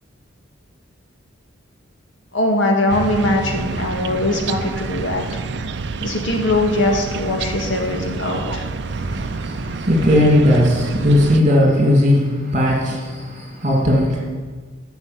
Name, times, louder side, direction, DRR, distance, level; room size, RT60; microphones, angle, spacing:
voice 1, 2.3-5.2 6.0-8.6, left 1 dB, 65° left, 1.8 m, -21 dB
sound 1, 2.9-11.4, right 4 dB, 55° right, 0.5 m, -28 dB
voice 2, 8.9-14.2, left 1 dB, 35° right, 2.5 m, -17 dB
11.5 x 6.2 x 8.2 m
head